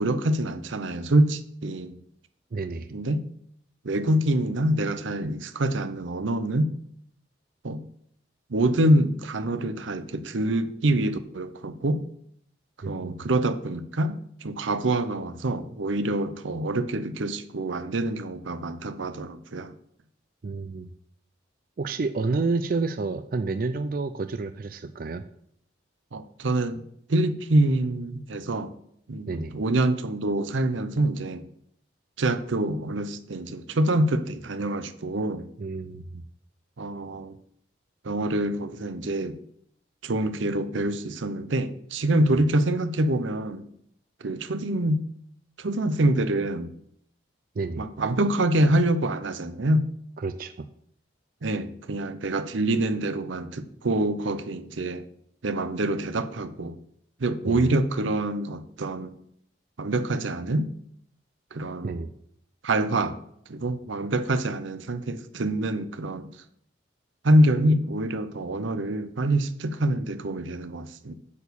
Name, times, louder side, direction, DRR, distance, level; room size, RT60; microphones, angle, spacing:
voice 1, 0.0-2.0 2.9-3.3 3.8-6.8 7.6-7.8 8.5-12.0 12.9-19.7 26.1-26.8 27.1-28.7 29.1-31.5 32.2-35.5 36.8-37.4 38.0-39.4 40.0-43.7 44.2-45.1 45.6-46.7 47.8-49.8 51.4-55.1 55.4-56.8 57.2-59.1 59.8-60.7 61.5-62.0 62.6-63.2 63.5-66.3 67.2-71.1, right 1 dB, 85° right, 0.7 m, -25 dB
voice 2, 2.5-2.9 12.8-13.3 20.4-20.9 21.8-25.2 29.3-29.5 35.6-36.2 47.6-47.8 50.2-50.7 57.4-57.7 61.8-62.1, right 3 dB, 45° right, 0.4 m, -30 dB
8.4 x 4.6 x 7.0 m
head